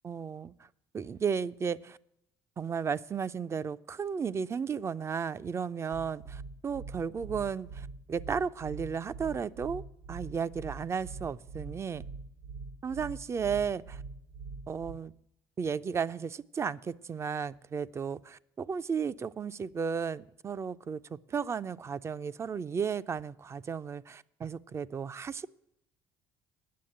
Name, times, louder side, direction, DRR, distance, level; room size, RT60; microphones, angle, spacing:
voice 1, 0.0-0.5 0.9-2.0 2.6-9.8 10.1-12.0 12.8-14.0 14.7-15.1 15.6-21.0 21.3-25.5, right 6 dB, 30° right, 0.4 m, -34 dB
sound 1, 5.9-14.9, right 4 dB, 80° right, 1.4 m, -43 dB
9.4 x 7.1 x 8.7 m
cardioid pair, 110°, 10 cm